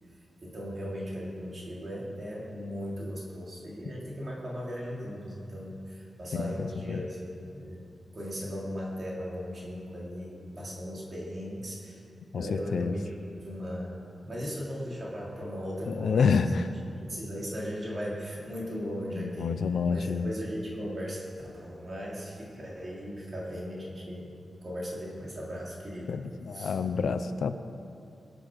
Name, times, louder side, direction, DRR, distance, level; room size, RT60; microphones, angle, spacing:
voice 1, 0.4-7.8 8.1-12.0 12.3-16.4 17.1-19.5 19.9-21.3 21.5-24.3 24.6-26.1 26.5-26.8, equal, 35° right, -4 dB, 3.4 m, -37 dB
voice 2, 6.3-7.0 12.3-13.0 15.8-16.7 19.2-20.3 26.1-27.5, left 5 dB, 85° left, 9 dB, 0.7 m, -28 dB
24.0 x 8.0 x 6.5 m, 2.6 s
wide cardioid pair, 130°, 0 cm